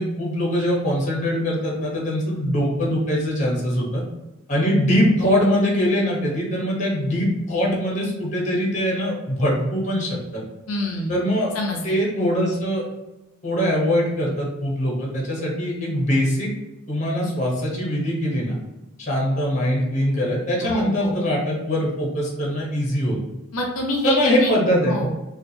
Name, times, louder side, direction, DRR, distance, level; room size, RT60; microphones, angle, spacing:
voice 1, 0.0-4.0 4.5-10.4 11.1-11.5 11.8-12.8 13.4-16.5 16.9-18.6 19.0-23.2 24.0-25.0, equal, 35° left, -3 dB, 0.9 m, -22 dB
voice 2, 10.7-11.2 11.5-11.9 20.7-21.2 23.5-24.5 24.9-25.3, left 1 dB, 80° left, 0 dB, 0.7 m, -26 dB
4.4 x 2.4 x 2.7 m, 1.0 s
head